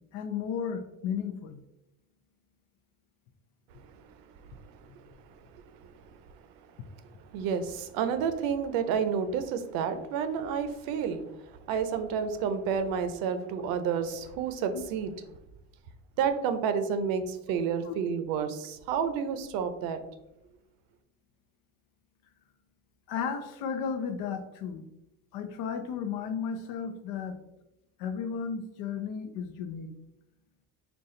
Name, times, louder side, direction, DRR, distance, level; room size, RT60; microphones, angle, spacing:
voice 1, 0.1-1.6 14.7-14.8 17.8-17.9 23.1-24.9 25.3-27.4 28.0-29.9, left 6 dB, 80° left, 8 dB, 0.6 m, -34 dB
voice 2, 7.3-11.2 11.7-15.1 16.2-20.0, right 7 dB, 90° right, 9 dB, 0.6 m, -30 dB
4.1 x 2.3 x 3.8 m, 0.89 s
cardioid pair, 140°, 34 cm